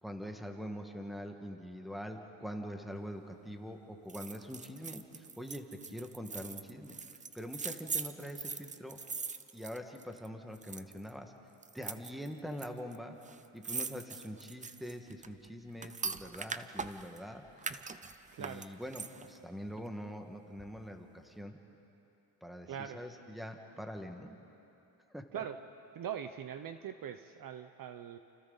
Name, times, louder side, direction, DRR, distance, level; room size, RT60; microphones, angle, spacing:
voice 1, 0.0-7.0 7.3-9.0 9.5-11.3 11.7-13.1 13.5-17.4 18.4-21.6 22.4-24.4 25.1-25.4, equal, ahead, 4 dB, 1.7 m, -44 dB
sound 1, 4.1-10.3 10.5-11.1 11.6-12.7 12.9-13.0 13.2-17.2 17.6-19.4 19.7-19.8, right 5 dB, 15° right, 0.5 m, -41 dB
voice 2, 18.3-18.7 22.7-23.0 25.3-25.6 25.9-28.2, right 9 dB, 45° right, 9 dB, 0.8 m, -42 dB
29.5 x 28.5 x 4.1 m, 3.0 s
cardioid pair, 125°, 47 cm